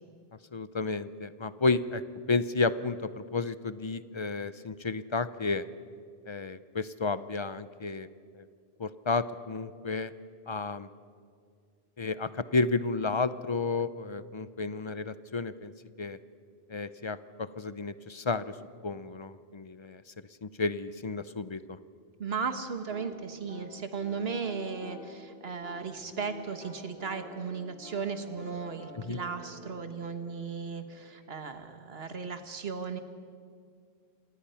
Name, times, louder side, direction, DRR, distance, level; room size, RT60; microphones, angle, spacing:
voice 1, 0.5-2.0 2.3-5.6 6.3-8.1 8.3-8.5 8.8-10.1 10.5-10.9 12.0-15.7 16.0-16.2 16.7-18.6 18.8-20.0 20.4-21.8 29.0-29.2, left 3 dB, 35° left, 14 dB, 0.5 m, -32 dB
voice 2, 22.2-33.0, right 5 dB, 70° right, 8 dB, 1.6 m, -36 dB
sound 1, 22.9-31.5, left 1 dB, 90° left, 5.8 m, -49 dB
27.0 x 19.0 x 5.7 m, 2.2 s
omnidirectional pair, 1.1 m